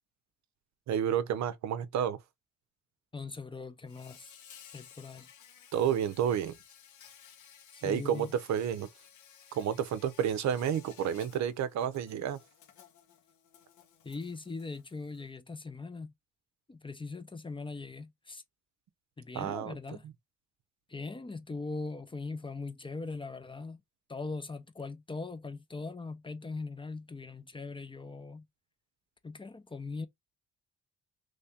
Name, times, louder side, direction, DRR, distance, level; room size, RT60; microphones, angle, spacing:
voice 1, 0.9-2.2 5.7-6.5 7.8-8.9 9.5-12.4 19.3-20.1, right 9 dB, 65° right, 0.6 m, -30 dB
voice 2, 3.1-4.4 4.7-5.3 7.7-8.3 14.0-16.1 16.7-18.4 19.2-20.0 20.9-23.8 24.1-28.4 29.2-30.1, left 3 dB, 15° left, 0.6 m, -40 dB
Insect, 3.9-15.3, left 8 dB, 75° left, 1.1 m, -57 dB
3.2 x 2.7 x 3.4 m
cardioid pair, 90°, 30 cm